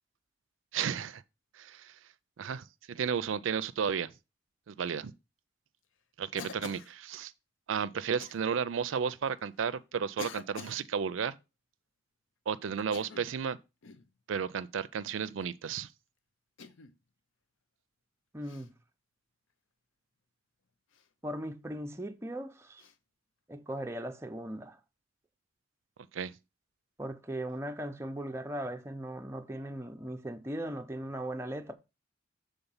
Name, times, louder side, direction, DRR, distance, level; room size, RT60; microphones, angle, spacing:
voice 1, 0.7-1.2 1.5-2.0 2.4-4.1 4.7-5.1 6.2-7.3 7.7-11.4 12.5-13.6 14.3-15.9 26.1-26.3, right 7 dB, 80° right, 0.4 m, -33 dB
Cough, 6.4-6.9 8.2-8.4 9.3-9.4 10.2-10.8 12.8-13.4 13.8-14.1 15.2-15.6 16.6-17.0 18.4-18.7 20.9-21.1 22.8-23.0, left 5 dB, 80° left, 0.7 m, -47 dB
voice 2, 18.3-18.7 21.2-22.8 23.5-24.8 27.0-31.7, right 1 dB, 15° right, 0.5 m, -38 dB
7.0 x 3.6 x 5.5 m
head